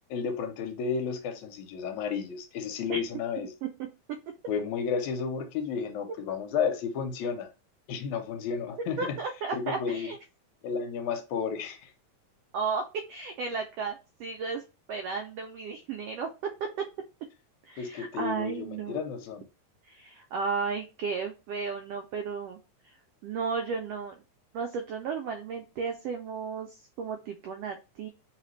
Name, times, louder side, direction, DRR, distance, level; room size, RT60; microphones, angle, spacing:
voice 1, 0.1-3.5 4.5-7.5 7.9-9.0 9.5-10.1 10.6-11.9 17.8-19.4, left 6 dB, 80° left, 2.0 m, -32 dB
voice 2, 9.0-10.2 12.5-14.6 14.9-16.3 16.6-16.7 17.7-19.0 19.9-22.6 22.8-22.9 23.2-24.2 24.5-28.1, right 5 dB, 85° right, 1.3 m, -34 dB
4.1 x 3.2 x 3.1 m
omnidirectional pair, 3.4 m